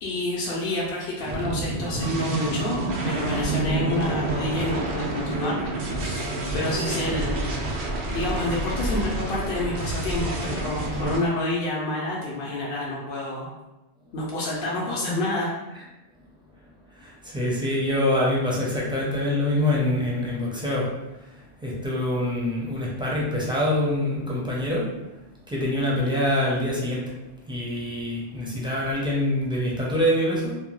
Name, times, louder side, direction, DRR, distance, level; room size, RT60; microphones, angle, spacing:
voice 1, 0.0-6.2 6.5-7.7 8.1-13.5 14.1-15.5, left 1 dB, 70° left, -4 dB, 0.8 m, -28 dB
sound 1, 1.3-11.2, right 2 dB, 90° right, 0.9 m, -28 dB
voice 2, 16.9-20.9 21.6-24.9 25.5-27.1 27.5-30.5, left 1 dB, 5° right, -5 dB, 0.4 m, -25 dB
2.6 x 2.1 x 3.0 m, 1.0 s
omnidirectional pair, 1.1 m